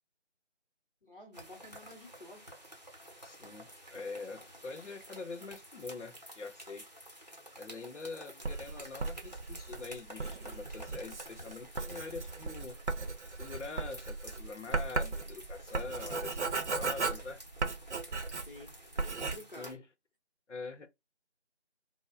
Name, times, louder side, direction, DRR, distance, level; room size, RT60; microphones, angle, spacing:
voice 1, 1.0-2.5 8.1-8.4 18.4-19.8, left 1 dB, 50° left, 0.9 m, -51 dB
sound 1, 1.3-19.7, equal, 40° right, 0.7 m, -51 dB
voice 2, 3.2-6.9 7.6-12.8 13.4-17.4 19.6-19.8 20.5-20.9, left 4 dB, 90° left, 0.7 m, -44 dB
Writing, 8.4-18.7 19.0-19.4, right 3 dB, 80° right, 0.7 m, -36 dB
3.2 x 2.1 x 2.2 m
figure-of-eight pair, 175°, 35 cm